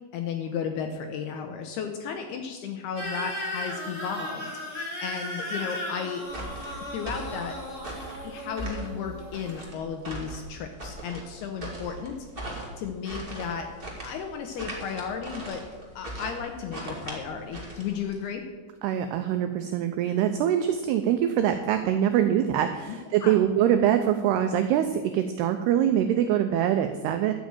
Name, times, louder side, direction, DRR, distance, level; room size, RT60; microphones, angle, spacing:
voice 1, 0.1-6.3 6.9-7.6 8.2-12.3 12.8-13.7 14.0-15.6 16.0-18.5 23.2-23.4, left 7 dB, 80° left, 5 dB, 2.4 m, -34 dB
sound 1, 2.9-9.7, left 1 dB, 35° left, 1.2 m, -36 dB
sound 2, 6.3-18.2, right 1 dB, 30° right, 1.0 m, -39 dB
voice 2, 18.8-27.3, right 10 dB, 90° right, 7 dB, 2.3 m, -24 dB
12.5 x 6.2 x 8.8 m, 1.4 s
omnidirectional pair, 5.4 m